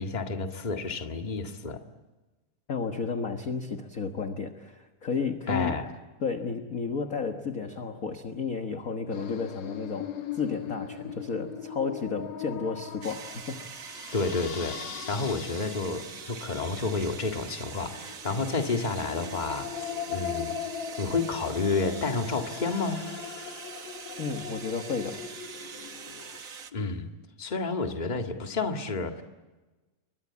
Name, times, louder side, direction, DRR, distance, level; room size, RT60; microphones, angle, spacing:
voice 1, 0.0-1.8 5.5-5.9 14.1-14.8 15.1-20.5 21.0-23.0 26.4-27.1 27.4-29.2, left 3 dB, 20° left, 5 dB, 1.4 m, -30 dB
voice 2, 2.7-5.8 6.2-13.7 24.2-25.2, left 5 dB, 45° left, 6 dB, 1.2 m, -32 dB
sound 1, 9.1-26.4, left 8 dB, 70° left, 2.6 m, -40 dB
sound 2, 13.0-26.7, right 7 dB, 80° right, 0.7 m, -43 dB
30.0 x 23.5 x 8.5 m, 1.2 s
omnidirectional pair, 3.3 m